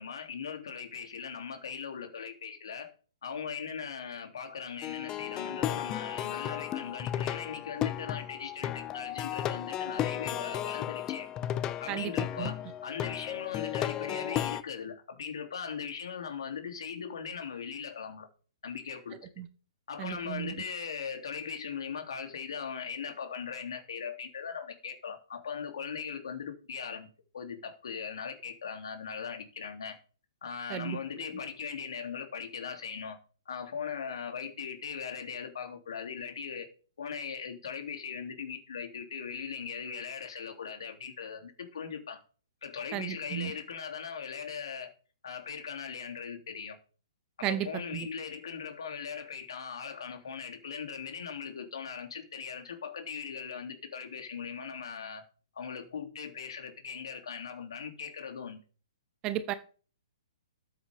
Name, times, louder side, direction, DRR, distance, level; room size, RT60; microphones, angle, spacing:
voice 1, 0.0-2.9 3.2-11.3 11.8-12.6 12.8-18.3 18.6-19.2 19.9-27.1 27.3-30.0 30.4-33.2 33.5-36.7 37.0-42.2 42.6-44.9 45.2-46.8 47.4-55.2 55.5-58.6, left 6 dB, 65° left, 3.0 m, -39 dB
Plucked string instrument, 4.8-14.6, left 11 dB, 25° left, 0.7 m, -34 dB
voice 2, 20.0-20.5 30.7-31.0 42.9-43.5 47.4-47.7 47.9-48.1 59.2-59.5, right 12 dB, 25° right, 1.0 m, -33 dB
13.5 x 8.1 x 3.6 m
hypercardioid pair, 125°, 3 cm